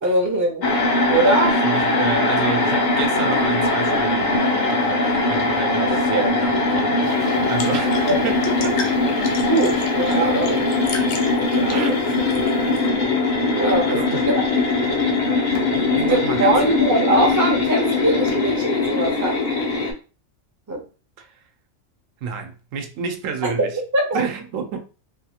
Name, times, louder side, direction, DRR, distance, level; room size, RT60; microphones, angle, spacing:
voice 1, 0.0-0.7 1.1-1.6 6.1-6.3 9.5-10.8 11.6-11.9 13.6-14.5 15.9-19.4 20.7-20.8 23.9-24.2, right 2 dB, 20° right, 0.5 m, -21 dB
sound 1, 0.6-19.9, left 3 dB, 50° left, 0.6 m, -21 dB
voice 2, 1.6-9.0 11.7-12.0 12.6-12.8 13.9-14.2 15.7-16.6 21.2-21.4 22.2-23.8 24.1-24.8, right 6 dB, 85° right, 1.0 m, -30 dB
sound 2, 7.0-12.9, left 5 dB, 90° left, 1.0 m, -36 dB
2.7 x 2.4 x 2.8 m
omnidirectional pair, 1.3 m